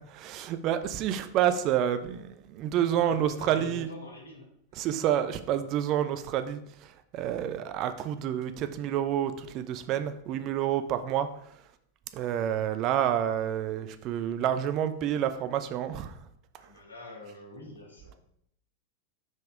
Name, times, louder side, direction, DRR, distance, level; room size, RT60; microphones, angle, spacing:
voice 1, 0.1-3.9 4.7-11.6 12.1-16.2, right 10 dB, 40° right, 10 dB, 0.5 m, -29 dB
voice 2, 3.0-4.5 16.6-18.2, left 2 dB, 75° left, 1 dB, 1.8 m, -45 dB
5.7 x 5.3 x 4.9 m, 0.72 s
figure-of-eight pair, 90°, 0 cm